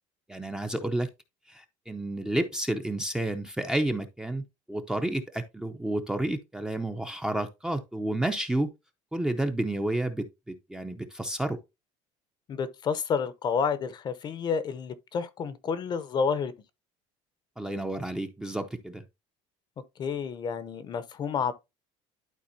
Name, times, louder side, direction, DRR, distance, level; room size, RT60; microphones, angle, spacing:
voice 1, 0.3-1.1 1.5-4.4 4.7-8.7 9.1-11.6 17.6-19.0, right 1 dB, 5° right, 0.6 m, -30 dB
voice 2, 12.5-16.5 20.0-21.5, left 6 dB, 30° left, 0.7 m, -30 dB
11.5 x 4.0 x 2.6 m
cardioid pair, 155°, 14 cm